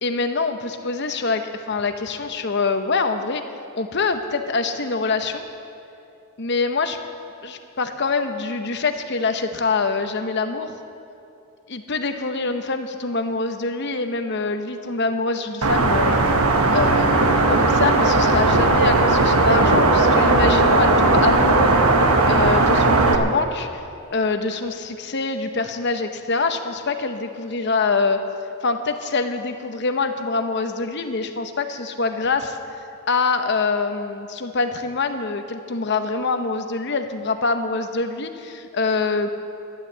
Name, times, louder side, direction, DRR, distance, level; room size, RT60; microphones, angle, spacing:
voice 1, 0.0-3.4 3.8-5.4 6.4-7.0 7.4-10.8 11.7-16.2 16.7-21.8 22.3-23.8 24.1-28.2 28.6-32.8 33.1-39.3, left 4 dB, 50° left, 7 dB, 0.8 m, -25 dB
sound 1, 15.6-23.2, right 2 dB, 80° right, 1.2 m, -17 dB
11.5 x 11.0 x 7.9 m, 2.6 s
head